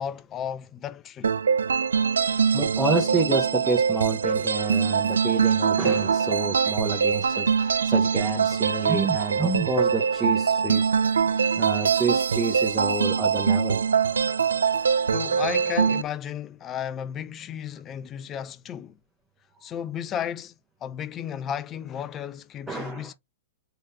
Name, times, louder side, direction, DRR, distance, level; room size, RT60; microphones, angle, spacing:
voice 1, 0.0-1.3 15.1-19.0 19.6-20.5 20.8-23.1, left 9 dB, 25° left, 0.5 m, -33 dB
sound 1, 1.2-16.0, right 6 dB, 90° right, 0.3 m, -23 dB
voice 2, 2.5-10.9 11.6-13.8 22.7-23.1, right 4 dB, 10° right, 1.0 m, -28 dB
3.7 x 3.1 x 2.7 m
hypercardioid pair, 120°, 0 cm